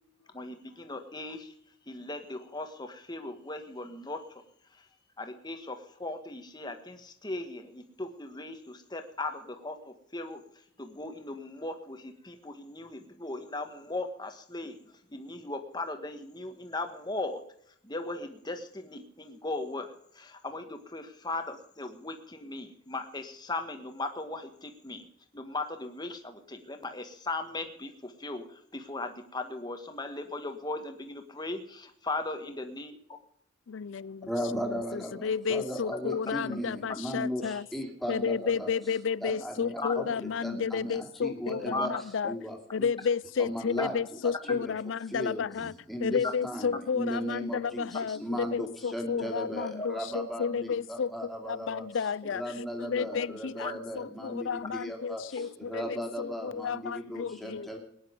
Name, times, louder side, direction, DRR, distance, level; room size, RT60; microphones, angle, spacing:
voice 1, 0.3-1.5 1.9-4.4 4.7-4.9 5.2-10.4 10.8-17.4 17.8-25.1 25.3-32.9 36.9-37.0 39.8-39.9 41.7-41.9 44.4-44.6 48.1-48.2 49.6-49.7 53.0-53.1 53.6-53.7 55.4-55.5 55.8-56.3, left 2 dB, 20° left, 1.6 m, -38 dB
voice 2, 33.7-37.7 38.1-42.4 42.7-45.7 46.0-57.7, left 6 dB, 70° left, 0.4 m, -32 dB
voice 3, 34.2-38.7 39.2-41.9 42.2-42.9 43.4-44.0 44.2-44.8 45.1-51.8 52.3-57.8, equal, ahead, 2.9 m, -36 dB
19.0 x 10.5 x 5.3 m
head